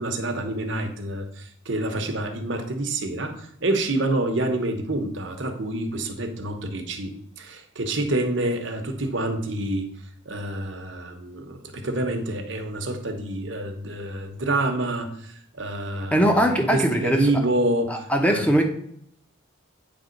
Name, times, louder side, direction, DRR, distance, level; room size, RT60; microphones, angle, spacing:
voice 1, 0.0-9.9 10.3-18.5, right 1 dB, 60° right, 5 dB, 1.1 m, -27 dB
voice 2, 16.1-17.3 17.9-18.6, equal, 5° left, 3 dB, 0.8 m, -21 dB
8.8 x 3.6 x 5.2 m, 0.69 s
head